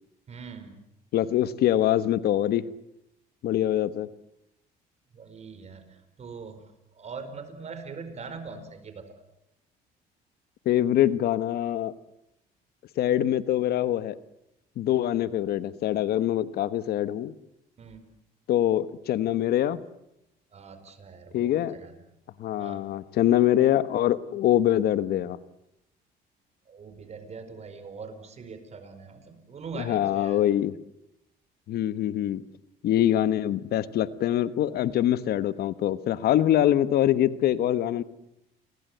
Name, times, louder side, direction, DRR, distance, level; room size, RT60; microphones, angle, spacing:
voice 1, 0.3-0.8 5.1-9.2 17.8-18.1 20.5-21.9 22.6-22.9 26.7-30.4, right 4 dB, 40° right, 9 dB, 4.9 m, -42 dB
voice 2, 1.1-2.6 3.4-4.1 10.6-11.9 13.0-14.2 14.8-17.3 18.5-19.8 21.3-21.8 22.4-25.4 29.7-30.8 31.7-32.4 32.8-38.0, left 12 dB, 70° left, 15 dB, 1.2 m, -24 dB
30.0 x 22.0 x 8.0 m, 0.83 s
cardioid pair, 110°, 17 cm